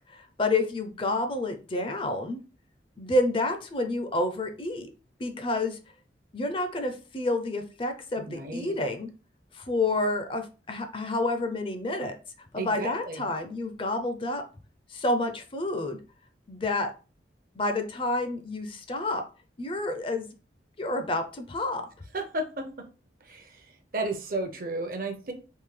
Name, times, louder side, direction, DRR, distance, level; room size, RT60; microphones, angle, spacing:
voice 1, 0.1-2.4 3.0-4.9 5.2-5.8 6.3-9.1 9.5-12.1 12.5-14.4 14.9-16.0 16.5-16.9 17.6-19.2 19.6-20.3 20.8-21.9, left 2 dB, 30° left, 6 dB, 0.4 m, -29 dB
voice 2, 8.2-8.8 12.6-13.3 22.1-22.6 23.3-23.5 23.9-25.3, right 2 dB, 50° right, 5 dB, 0.7 m, -33 dB
3.6 x 2.6 x 3.2 m, 0.34 s
head